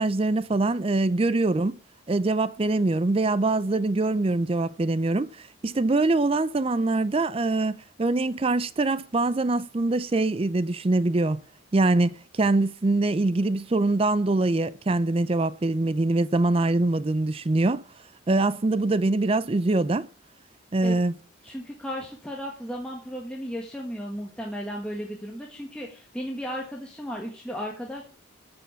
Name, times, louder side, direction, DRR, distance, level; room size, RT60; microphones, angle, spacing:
voice 1, 0.0-1.8 2.1-11.4 11.7-17.8 18.3-20.1 20.7-21.1, right 2 dB, 25° right, 0.4 m, -24 dB
voice 2, 21.4-28.0, equal, 5° left, 1.6 m, -35 dB
9.1 x 7.0 x 8.2 m
head